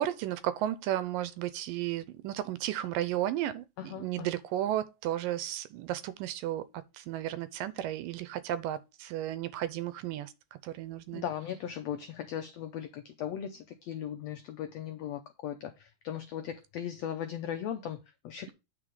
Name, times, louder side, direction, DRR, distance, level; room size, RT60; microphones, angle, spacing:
voice 1, 0.0-11.3, right 12 dB, 85° right, 2.4 m, -34 dB
voice 2, 3.8-4.3 11.1-18.5, left 9 dB, 85° left, 1.4 m, -38 dB
8.9 x 4.6 x 5.0 m
omnidirectional pair, 3.9 m